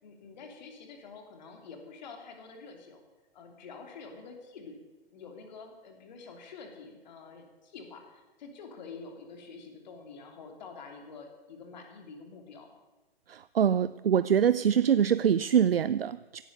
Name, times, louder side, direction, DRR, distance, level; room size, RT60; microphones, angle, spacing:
voice 1, 0.0-3.0 3.3-4.8 5.1-12.7, left 4 dB, 45° left, 4 dB, 3.2 m, -47 dB
voice 2, 13.3-16.4, right 8 dB, 70° right, 16 dB, 0.5 m, -24 dB
16.5 x 11.0 x 6.8 m, 1.2 s
figure-of-eight pair, 120°, 30 cm